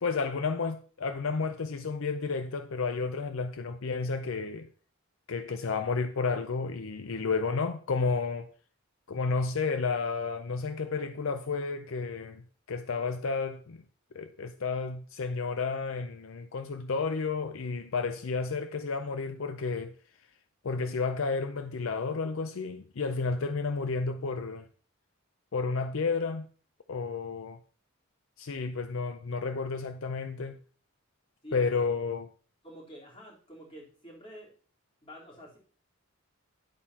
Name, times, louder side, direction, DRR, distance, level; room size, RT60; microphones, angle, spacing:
voice 1, 0.0-4.7 5.3-8.5 9.1-12.4 12.7-13.8 14.1-19.9 20.6-24.6 25.5-26.5 26.9-27.6 28.4-30.6 31.5-32.3, left 4 dB, 65° left, 0.5 m, -31 dB
voice 2, 32.6-34.5 35.0-35.6, equal, 25° left, 3.7 m, -48 dB
11.0 x 8.6 x 2.9 m
head